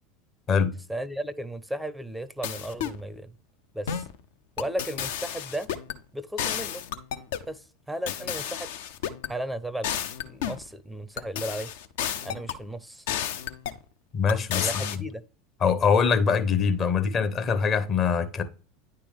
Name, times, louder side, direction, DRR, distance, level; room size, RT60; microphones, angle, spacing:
voice 1, 0.9-3.3 3.7-4.1 4.6-5.7 6.1-6.8 7.4-8.7 9.3-9.9 10.2-11.7 12.2-13.0 14.5-15.2, right 1 dB, ahead, 0.5 m, -35 dB
sound 1, 2.4-3.0 3.9-4.2 4.6-6.0 6.4-7.5 8.1-9.3 9.8-10.7 11.2-12.6 13.1-13.8 14.3-15.0, left 9 dB, 60° left, 0.5 m, -32 dB
voice 2, 14.1-14.9 15.6-18.4, left 6 dB, 35° left, 0.8 m, -23 dB
9.8 x 3.4 x 3.4 m
figure-of-eight pair, 75°, 0 cm